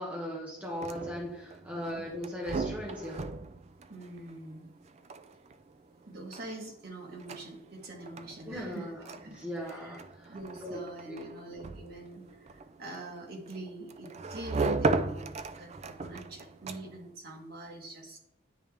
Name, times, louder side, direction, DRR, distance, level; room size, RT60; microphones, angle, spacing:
voice 1, 0.0-3.2 8.5-9.0 9.4-10.0 10.6-10.8 11.1-11.3, equal, 5° right, -4 dB, 1.4 m, -38 dB
sound 1, 0.6-17.1, right 3 dB, 35° right, 0.3 m, -38 dB
voice 2, 1.7-2.0 3.9-4.7 6.1-10.0 10.3-18.2, right 1 dB, 50° right, 0 dB, 1.6 m, -44 dB
9.9 x 3.4 x 3.4 m, 0.76 s
head